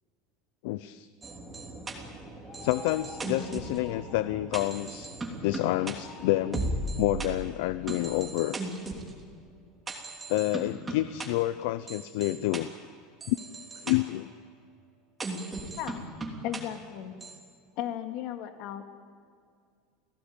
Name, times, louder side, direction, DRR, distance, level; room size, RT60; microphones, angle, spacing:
voice 1, 0.6-1.1 2.6-5.2 5.4-6.6 7.0-8.6 10.3-12.7 13.3-13.4 13.8-14.3, left 16 dB, 70° left, 14 dB, 0.7 m, -28 dB
sound 1, 1.2-7.3 7.9-9.1 9.9-11.3 11.9-12.6 13.2-13.9 15.2-16.6 17.2-17.4, right 2 dB, 15° right, 3.1 m, -37 dB
sound 2, 2.4-4.2 5.5-6.6, left 3 dB, 25° left, 6.3 m, -49 dB
voice 2, 15.8-16.1 16.4-17.1 17.8-18.8, left 11 dB, 55° left, 6 dB, 2.5 m, -35 dB
30.0 x 17.5 x 8.9 m, 2.2 s
supercardioid pair, 155°, 0 cm